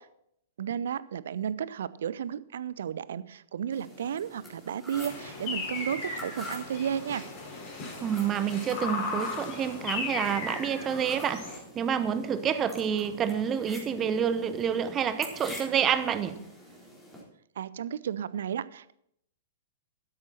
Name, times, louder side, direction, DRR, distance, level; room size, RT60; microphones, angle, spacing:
voice 1, 0.6-7.2 17.6-18.9, right 9 dB, 60° right, 18 dB, 0.5 m, -33 dB
sound 1, 3.7-17.2, left 1 dB, 5° left, 3.9 m, -47 dB
sound 2, 4.9-11.6, left 3 dB, 35° left, 5.0 m, -36 dB
voice 2, 8.0-16.4, right 8 dB, 20° right, 12 dB, 0.9 m, -28 dB
12.5 x 10.5 x 4.3 m, 0.72 s
figure-of-eight pair, 105°, 0 cm